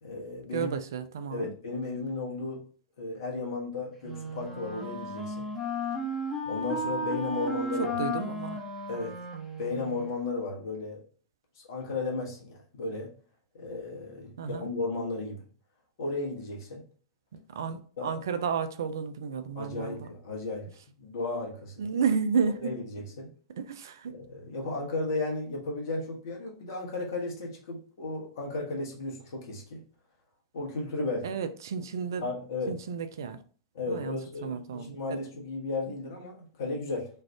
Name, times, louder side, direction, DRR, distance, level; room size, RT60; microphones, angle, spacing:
voice 1, 0.0-0.7 1.3-2.6 3.0-5.5 6.4-7.9 8.9-9.1 9.6-11.0 11.6-13.1 13.5-15.4 16.0-16.8 18.0-18.1 19.5-20.7 21.0-21.8 22.6-23.3 24.1-29.8 30.5-31.4 32.2-32.7 33.7-37.1, left 3 dB, 55° left, -1 dB, 1.1 m, -34 dB
voice 2, 0.5-1.5 7.8-8.6 14.4-14.7 17.5-20.1 21.8-22.8 23.6-24.1 31.2-32.3 32.7-33.4 33.9-35.2, right 6 dB, 60° right, 10 dB, 0.3 m, -32 dB
Wind instrument woodwind instrument, 4.0-10.1, left 1 dB, 5° right, 1.0 m, -34 dB
3.2 x 2.4 x 3.4 m, 0.42 s
figure-of-eight pair, 95°, 2 cm